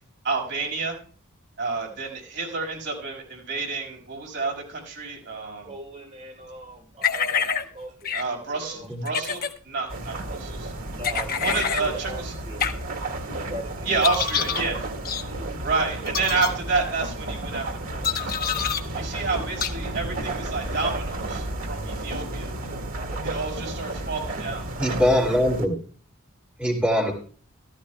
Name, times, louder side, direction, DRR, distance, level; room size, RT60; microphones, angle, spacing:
voice 1, 0.2-1.0 1.6-5.7 8.1-10.7 11.4-12.3 13.8-14.8 15.6-18.6 18.9-22.5 23.2-24.6, right 4 dB, 60° right, -1 dB, 5.1 m, -29 dB
voice 2, 5.6-8.9 10.9-11.5 11.8-12.7 13.3-14.3 15.3-15.8, right 1 dB, 35° right, 0 dB, 3.8 m, -40 dB
sound 1, 7.0-7.6 8.0-8.2 9.0-9.5 11.0-11.8 12.6-12.7 14.0-14.6 15.0-15.2 16.1-16.5 18.0-18.8 19.6-19.7, left 7 dB, 45° left, 0.9 m, -26 dB
sound 2, 9.9-25.7, right 2 dB, 85° right, 1.9 m, -32 dB
voice 3, 24.8-25.8 26.6-27.1, equal, 5° right, -2 dB, 2.3 m, -22 dB
15.0 x 13.5 x 2.2 m, 0.43 s
head